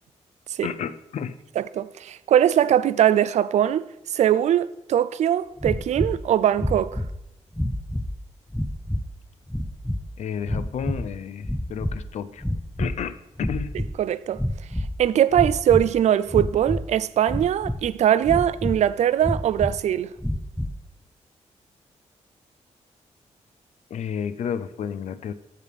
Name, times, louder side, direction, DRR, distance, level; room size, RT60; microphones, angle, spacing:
voice 1, 0.6-1.4 10.2-12.4 12.8-13.8 23.9-25.3, left 7 dB, 70° left, 0.6 m, -31 dB
voice 2, 1.6-3.9 4.1-7.0 14.0-14.4 15.0-20.1, right 10 dB, 70° right, 0.4 m, -21 dB
sound 1, 5.6-6.2 6.6-7.2 7.5-8.2 8.5-9.1 9.5-10.0 10.4-11.1 11.4-12.1 12.4-13.0 13.4-13.9 14.3-15.0 15.3-15.9 16.3-16.8 17.3-17.9 18.2-18.8 19.2-19.8 20.2-20.8, left 1 dB, 5° left, 0.4 m, -28 dB
15.0 x 6.7 x 3.6 m
wide cardioid pair, 135°, 12 cm